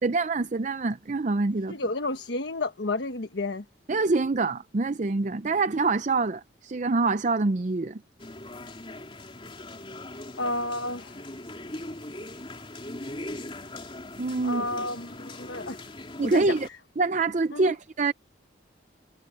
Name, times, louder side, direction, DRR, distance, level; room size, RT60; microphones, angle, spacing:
voice 1, 0.0-1.8 3.9-8.0 14.2-14.6 16.2-16.7 17.0-18.1, right 3 dB, 40° right, 0.5 m, -25 dB
voice 2, 1.7-3.6 10.4-11.2 14.4-15.8 16.2-16.6 17.5-17.8, left 2 dB, 75° left, 1.2 m, -31 dB
sound 1, 8.2-16.7, left 1 dB, 30° left, 3.1 m, -40 dB
head